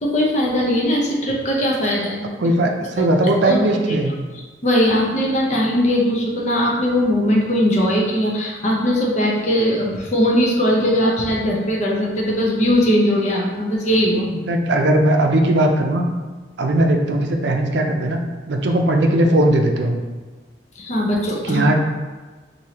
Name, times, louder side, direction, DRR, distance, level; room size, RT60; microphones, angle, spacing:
voice 1, 0.0-2.2 3.4-4.0 4.6-14.3 20.8-21.7, equal, 40° left, -3 dB, 0.7 m, -19 dB
voice 2, 2.4-4.1 14.5-16.1 16.6-18.2 18.5-20.0 21.4-21.7, right 1 dB, 70° right, 3 dB, 0.5 m, -18 dB
4.7 x 2.7 x 2.9 m, 1.3 s
head